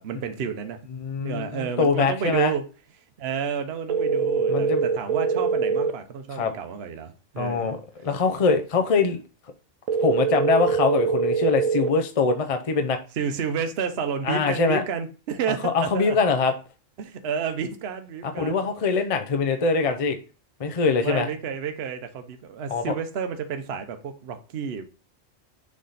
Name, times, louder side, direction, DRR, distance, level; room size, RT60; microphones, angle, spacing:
voice 1, 0.0-0.8 1.2-2.6 3.2-7.8 13.2-16.2 17.0-18.6 20.7-24.8, right 7 dB, 55° right, 0.9 m, -30 dB
voice 2, 0.9-2.5 4.5-4.8 6.3-6.5 7.4-9.2 10.0-13.0 14.2-14.8 15.7-16.5 18.2-20.2 20.6-21.3 22.7-22.9, left 4 dB, 40° left, 0.5 m, -23 dB
sound 1, 3.9-5.9 9.9-11.9, right 6 dB, 80° right, 1.0 m, -23 dB
6.5 x 3.6 x 3.9 m
omnidirectional pair, 1.4 m